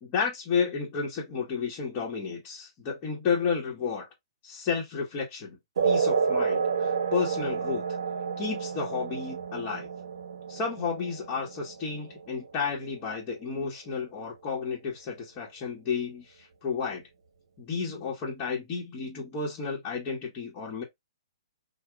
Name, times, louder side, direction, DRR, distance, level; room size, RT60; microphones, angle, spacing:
voice 1, 0.0-4.1 4.4-5.6 5.8-7.8 8.4-9.9 10.5-17.0 17.6-20.8, left 5 dB, 30° left, 1.3 m, -32 dB
sound 1, 5.8-12.8, right 6 dB, 65° right, 0.8 m, -30 dB
3.7 x 2.5 x 3.4 m
hypercardioid pair, 130°, 3 cm